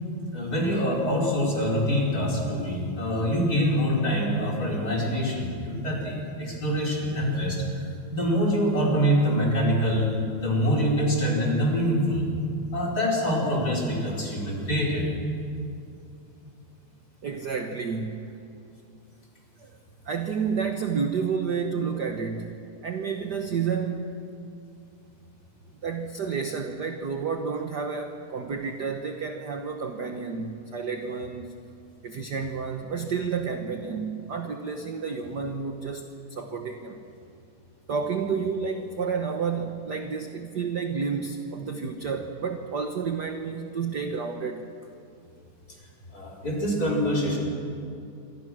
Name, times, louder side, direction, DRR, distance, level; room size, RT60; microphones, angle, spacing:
voice 1, 0.3-7.6 8.1-10.1 10.4-12.3 12.7-15.1 46.1-47.4, equal, 30° left, -2 dB, 5.6 m, -25 dB
voice 2, 17.2-18.3 19.6-19.7 20.0-22.6 22.8-24.3 25.8-31.6 32.0-37.0 37.9-44.7, right 5 dB, 55° right, 5 dB, 1.1 m, -30 dB
27.0 x 24.5 x 6.3 m, 2.5 s
omnidirectional pair, 3.4 m